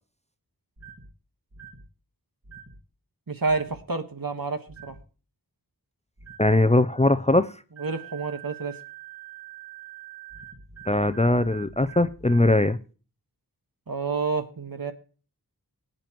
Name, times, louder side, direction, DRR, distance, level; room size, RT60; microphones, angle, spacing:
sound 1, 0.8-1.1 1.5-1.9 2.4-2.8 3.5-3.8 4.7-5.0 6.2-6.5 7.8-12.5, right 8 dB, 45° right, 1.9 m, -45 dB
voice 1, 3.3-4.9 7.8-8.8 13.9-14.9, right 4 dB, 65° right, 7 dB, 1.4 m, -29 dB
voice 2, 6.4-7.5 10.9-12.8, left 2 dB, 20° left, 12 dB, 0.5 m, -20 dB
21.0 x 9.0 x 3.0 m, 0.37 s
wide cardioid pair, 50°, 38 cm